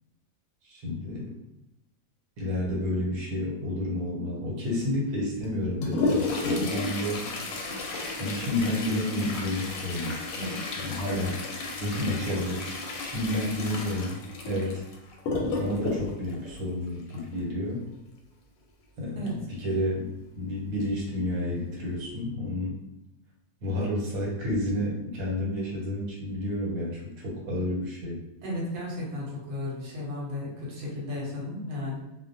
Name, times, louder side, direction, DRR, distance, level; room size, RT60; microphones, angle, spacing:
voice 1, 0.7-1.3 2.4-7.3 8.2-10.3 10.8-14.2 14.5-14.8 15.6-17.9 19.0-22.8 23.6-28.2, left 1 dB, 75° right, -3 dB, 1.2 m, -30 dB
Toilet flush, 5.4-17.4 19.3-19.4 19.7-19.8 20.6-20.7 21.3-21.6 22.0-22.2, left 3 dB, 75° left, 0.9 m, -33 dB
voice 2, 28.4-32.0, left 1 dB, 50° right, -4 dB, 1.0 m, -34 dB
2.4 x 2.2 x 2.6 m, 0.92 s
omnidirectional pair, 1.5 m